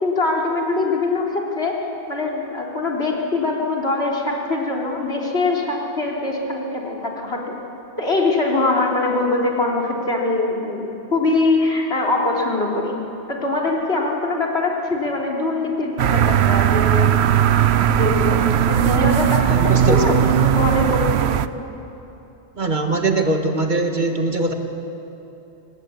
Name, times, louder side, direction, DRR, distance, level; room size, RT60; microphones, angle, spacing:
voice 1, 0.0-1.8 2.1-7.6 8.0-12.9 13.3-17.6 17.9-21.3, left 2 dB, 65° left, -2 dB, 3.7 m, -22 dB
sound 1, 16.0-21.5, right 10 dB, 70° right, 0.9 m, -17 dB
voice 2, 19.4-20.5 22.6-24.5, right 2 dB, 45° right, 4 dB, 1.7 m, -22 dB
25.0 x 19.5 x 8.4 m, 2.9 s
omnidirectional pair, 1.2 m